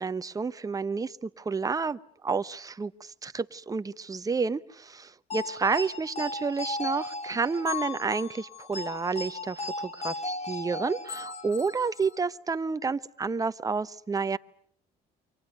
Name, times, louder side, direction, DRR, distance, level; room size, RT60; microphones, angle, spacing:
voice 1, 0.0-14.4, right 4 dB, 20° right, 12 dB, 1.0 m, -30 dB
sound 1, 5.3-12.2, left 3 dB, 40° left, 3.8 m, -36 dB
29.0 x 25.0 x 6.7 m, 0.62 s
cardioid pair, 110°, 17 cm